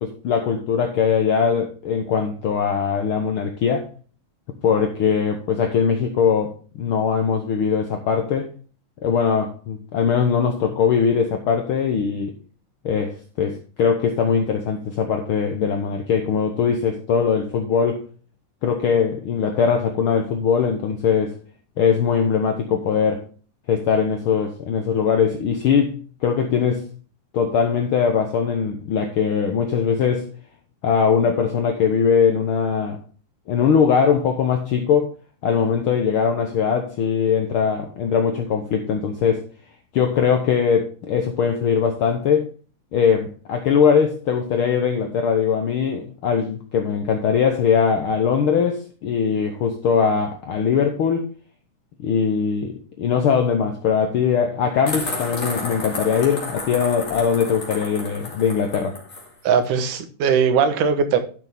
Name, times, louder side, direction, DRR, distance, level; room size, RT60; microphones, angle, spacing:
voice 1, 0.0-3.9 4.6-8.5 9.0-12.3 12.8-18.0 18.6-21.3 21.8-23.2 23.7-26.9 27.3-30.3 30.8-33.0 33.5-35.1 35.4-39.4 39.9-42.5 42.9-51.3 52.0-59.0, left 6 dB, 70° left, 3 dB, 1.3 m, -21 dB
sound 1, 54.9-59.3, left 2 dB, 25° left, 2.6 m, -31 dB
voice 2, 59.4-61.2, right 6 dB, 80° right, 8 dB, 2.6 m, -19 dB
12.0 x 6.1 x 3.4 m, 0.39 s
omnidirectional pair, 3.6 m